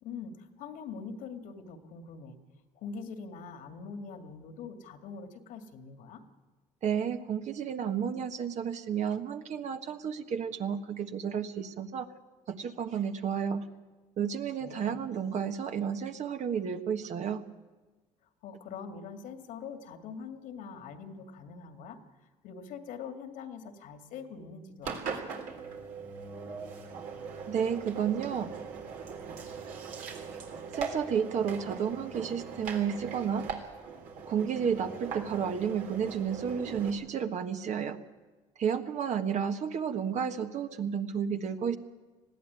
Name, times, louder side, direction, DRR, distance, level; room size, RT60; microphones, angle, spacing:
voice 1, 0.0-2.4 2.8-6.2 14.6-15.0 18.4-22.0 22.4-25.4, left 5 dB, 75° left, 7 dB, 2.3 m, -43 dB
voice 2, 6.8-12.1 12.5-13.7 14.2-17.4 27.5-28.5 30.7-33.5 34.3-38.0 38.6-41.8, right 7 dB, 60° right, 7 dB, 1.5 m, -31 dB
Engine, 24.8-36.9, right 5 dB, 75° right, 3.5 m, -40 dB
20.0 x 15.0 x 9.7 m, 1.2 s
supercardioid pair, 85°, 14 cm